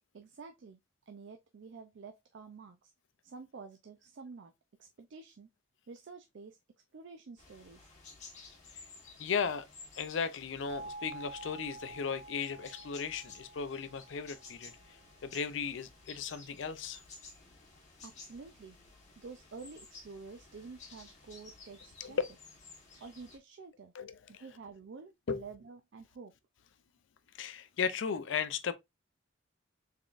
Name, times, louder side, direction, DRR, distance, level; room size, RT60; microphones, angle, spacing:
voice 1, 0.1-0.8 1.1-2.9 3.2-4.5 4.8-5.5 5.9-6.6 6.9-7.9 18.0-18.8 19.2-22.2 23.0-23.9 24.3-26.3, right 4 dB, 60° right, 0.4 m, -49 dB
sound 1, 7.4-23.4, left 4 dB, 35° left, 1.3 m, -54 dB
voice 2, 9.2-9.7 10.0-17.0 22.0-22.2 23.9-24.4 25.3-25.4 27.3-28.7, left 6 dB, 65° left, 0.4 m, -36 dB
sound 2, 10.7-15.4, right 2 dB, 75° right, 1.7 m, -49 dB
3.8 x 3.6 x 2.4 m
head